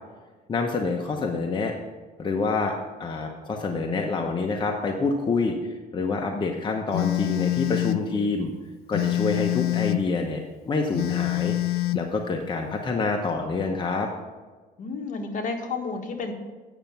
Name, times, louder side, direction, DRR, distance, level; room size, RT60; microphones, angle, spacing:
voice 1, 0.5-1.7 2.2-2.7 3.0-8.5 8.9-14.1, left 3 dB, 25° left, 2 dB, 0.9 m, -27 dB
Telephone, 6.9-8.1 8.9-10.1 10.9-12.1, left 17 dB, 70° left, 0.5 m, -25 dB
voice 2, 14.8-16.3, left 4 dB, 50° left, 3 dB, 1.4 m, -31 dB
8.9 x 6.5 x 5.8 m, 1.3 s
cardioid pair, 110°, 17 cm